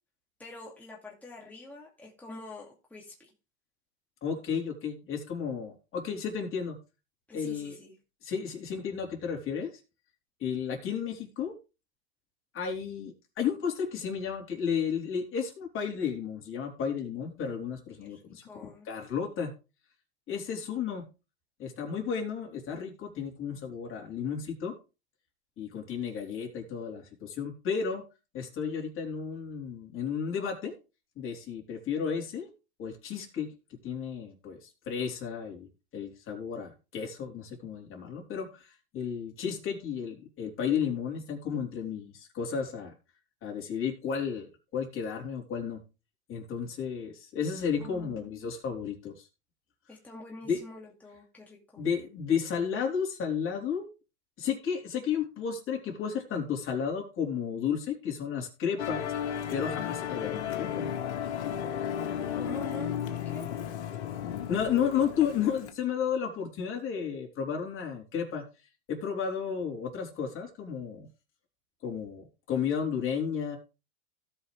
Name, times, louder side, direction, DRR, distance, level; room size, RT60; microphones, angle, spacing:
voice 1, 0.4-3.3 7.3-8.0 18.1-18.9 47.8-48.5 49.9-51.8 62.4-63.6, left 2 dB, 5° left, -3 dB, 2.4 m, -46 dB
voice 2, 4.2-6.8 7.3-7.8 8.2-9.7 10.4-11.5 12.5-19.5 20.3-21.0 21.6-24.7 25.6-28.0 28.3-30.7 31.2-32.5 32.8-33.5 33.8-35.7 35.9-42.9 43.4-44.5 44.7-45.8 46.3-49.3 50.5-50.6 51.8-53.9 54.4-59.0 59.5-60.9 64.2-68.4 68.9-71.1 71.8-73.6, left 7 dB, 40° left, 1 dB, 3.8 m, -33 dB
Musical instrument, 58.8-65.7, left 9 dB, 85° left, 1.6 m, -34 dB
17.0 x 5.7 x 3.3 m, 0.30 s
hypercardioid pair, 110°, 34 cm